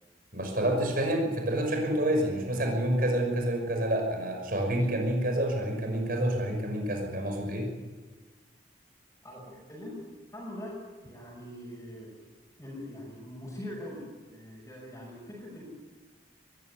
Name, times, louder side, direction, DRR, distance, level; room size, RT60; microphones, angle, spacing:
voice 1, 0.3-7.7, right 1 dB, 50° right, 2 dB, 5.8 m, -28 dB
voice 2, 9.2-10.0 10.3-12.1 12.6-15.6, left 1 dB, 15° left, -6 dB, 6.5 m, -42 dB
21.5 x 15.5 x 9.6 m, 1.3 s
head